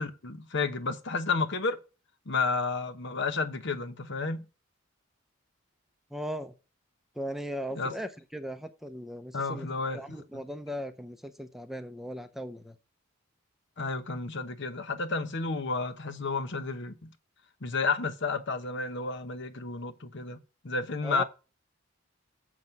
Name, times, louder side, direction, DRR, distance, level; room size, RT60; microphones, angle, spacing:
voice 1, 0.0-1.8 2.3-4.4 7.7-8.0 9.3-10.0 13.8-17.1 17.6-20.4 20.6-21.2, left 4 dB, 60° left, 1.0 m, -31 dB
voice 2, 6.1-6.5 7.2-9.7 9.9-12.7 21.0-21.2, equal, ahead, 0.7 m, -38 dB
7.4 x 6.3 x 5.3 m
head